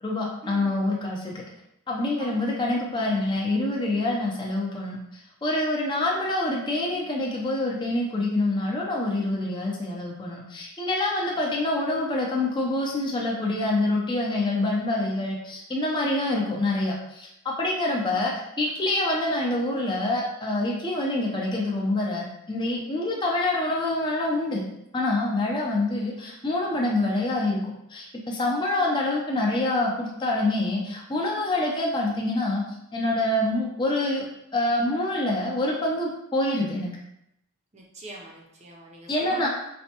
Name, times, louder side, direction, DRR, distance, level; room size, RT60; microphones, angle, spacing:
voice 1, 0.0-1.4 1.9-5.0 5.4-24.6 24.9-27.6 27.9-32.6 32.9-34.3 34.5-37.0 39.1-39.5, left 2 dB, 20° left, -3 dB, 0.5 m, -26 dB
voice 2, 37.7-39.5, right 1 dB, 30° right, -1 dB, 0.5 m, -42 dB
4.1 x 2.2 x 2.8 m, 0.80 s
head